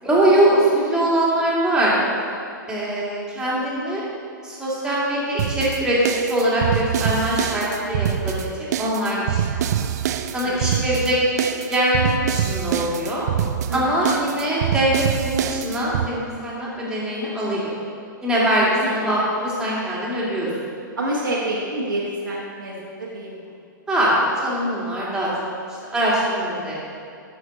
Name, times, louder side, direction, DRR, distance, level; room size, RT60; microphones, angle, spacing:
voice 1, 0.0-1.9 2.7-4.0 4.4-8.5 8.8-9.8 10.3-11.2 11.7-13.3 13.7-17.7 18.2-20.5 23.9-25.3 25.9-27.0, right 1 dB, 5° right, -7 dB, 2.5 m, -22 dB
sound 1, 5.4-16.1, right 10 dB, 50° right, 0.4 m, -25 dB
voice 2, 10.4-10.9 13.7-13.9 18.8-19.1 21.0-23.3, right 1 dB, 75° right, -4 dB, 1.5 m, -28 dB
12.0 x 5.8 x 4.0 m, 2.3 s
figure-of-eight pair, 115°, 11 cm